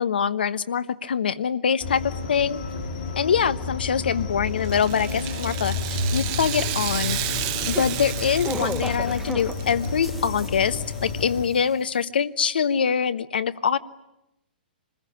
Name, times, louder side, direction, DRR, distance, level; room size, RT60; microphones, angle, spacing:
voice 1, 0.0-2.6 3.2-7.2 7.7-13.8, left 7 dB, 75° left, 15 dB, 1.1 m, -24 dB
sound 1, 1.8-11.5, left 4 dB, 55° left, 4.4 m, -31 dB
Rattle (instrument), 4.6-9.9 10.2-10.3 11.1-11.2, right 13 dB, 40° right, 1.3 m, -32 dB
sound 2, 6.5-11.3 11.5-11.6, right 1 dB, 5° right, 1.2 m, -36 dB
27.0 x 20.5 x 10.0 m, 0.88 s
hypercardioid pair, 125°, 5 cm